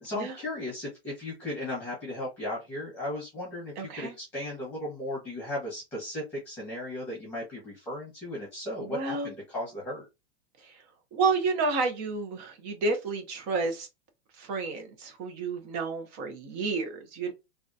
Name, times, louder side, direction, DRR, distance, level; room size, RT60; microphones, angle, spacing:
voice 1, 0.0-10.1, left 1 dB, 5° left, -5 dB, 1.1 m, -36 dB
voice 2, 3.8-4.1 8.8-9.3 10.6-10.8 11.1-13.9 14.4-17.3, right 4 dB, 25° right, 6 dB, 0.5 m, -30 dB
3.5 x 2.2 x 2.6 m, 0.25 s
supercardioid pair, 160°, 34 cm